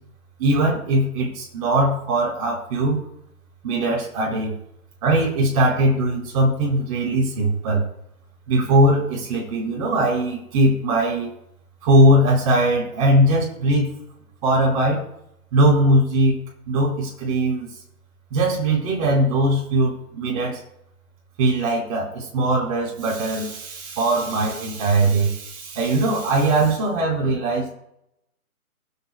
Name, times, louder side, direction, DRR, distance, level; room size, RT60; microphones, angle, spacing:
voice 1, 0.4-3.0 3.6-4.5 5.0-7.8 8.5-11.3 11.8-14.0 14.4-15.0 15.5-16.4 16.7-17.7 18.3-20.6 21.4-27.7, right 1 dB, 25° right, -3 dB, 4.3 m, -20 dB
24.0 x 8.3 x 2.3 m, 0.77 s
hypercardioid pair, 165°, 44 cm